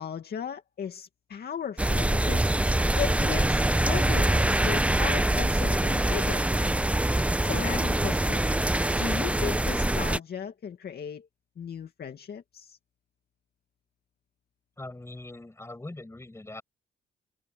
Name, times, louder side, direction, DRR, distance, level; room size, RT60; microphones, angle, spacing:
voice 1, 0.0-2.5 3.0-6.5 7.4-8.5 8.9-11.3 11.6-12.8, left 7 dB, 55° left, 2.2 m, -36 dB
sound 1, 1.8-10.2, right 1 dB, 5° right, 0.9 m, -24 dB
voice 2, 14.8-16.6, left 2 dB, 15° left, 7.5 m, -42 dB
cardioid pair, 90°, 20 cm